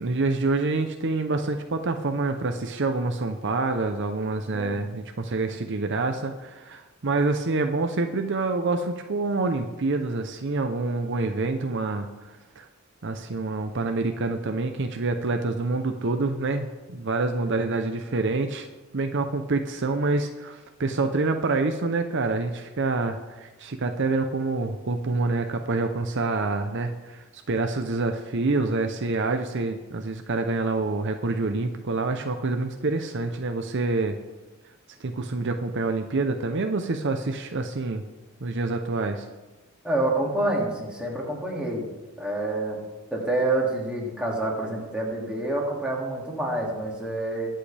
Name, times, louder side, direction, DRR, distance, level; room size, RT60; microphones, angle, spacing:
voice 1, 0.0-12.1 12.6-12.7 13.0-18.7 18.9-34.2 35.0-38.0 38.4-39.3, right 3 dB, 60° right, 6 dB, 0.7 m, -27 dB
voice 2, 39.8-41.9 42.2-42.8 43.1-47.5, right 2 dB, 5° right, -3 dB, 2.4 m, -27 dB
21.5 x 7.7 x 3.4 m, 1.2 s
head